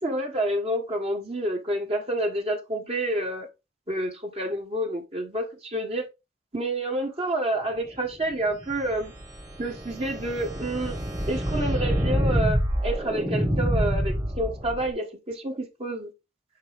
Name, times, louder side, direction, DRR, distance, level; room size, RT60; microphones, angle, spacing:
voice 1, 0.0-3.5 3.9-6.0 6.5-9.1 9.6-11.0 11.3-16.1, right 1 dB, 35° right, 1.5 m, -29 dB
sound 1, 8.6-14.9, equal, 20° right, 1.5 m, -27 dB
9.5 x 3.7 x 3.6 m
head